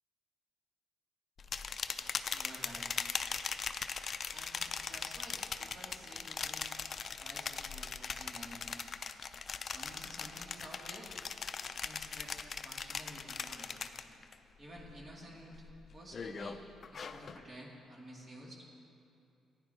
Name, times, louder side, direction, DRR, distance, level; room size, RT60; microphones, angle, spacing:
sound 1, 1.4-14.3 14.7-15.1 15.5-17.4, left 5 dB, 45° left, 0.4 m, -40 dB
voice 1, 1.9-3.5 4.3-6.7 7.2-8.8 9.7-11.1 11.7-12.3 12.6-13.8 14.6-15.6 15.9-16.6 16.9-18.7, right 1 dB, 40° right, -3 dB, 2.3 m, -52 dB
14.5 x 10.0 x 2.8 m, 2.6 s
cardioid pair, 90°, 0 cm